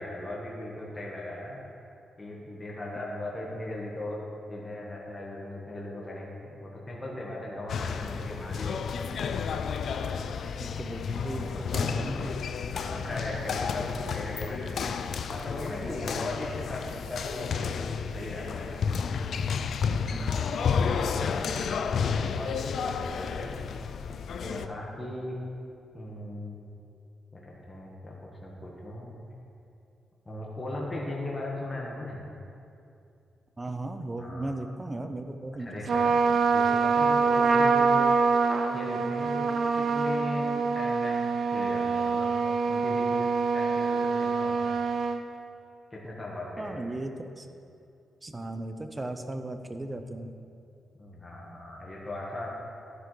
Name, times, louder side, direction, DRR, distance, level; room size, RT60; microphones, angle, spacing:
voice 1, 0.0-1.6 2.2-4.2 4.5-8.9 9.9-10.2 11.2-12.1 12.7-18.7 20.1-20.3 21.5-21.7 22.0-23.6 24.4-25.4 25.9-26.6 27.3-29.1 30.2-32.2 34.2-34.5 35.6-38.1 38.7-39.5 39.7-41.2 41.5-42.3 42.7-44.8 45.9-46.8 51.0-52.5, left 1 dB, 20° left, -4 dB, 1.4 m, -38 dB
sound 1, 7.7-24.7, left 6 dB, 65° left, 0.4 m, -31 dB
voice 2, 10.6-12.3 20.1-20.3 20.9-21.3 33.6-36.1 46.6-47.5 48.2-50.3, right 2 dB, 20° right, 7 dB, 0.6 m, -36 dB
Trumpet, 35.9-45.2, right 4 dB, 60° right, 0.6 m, -25 dB
11.5 x 10.0 x 3.3 m, 2.6 s
cardioid pair, 125°, 0 cm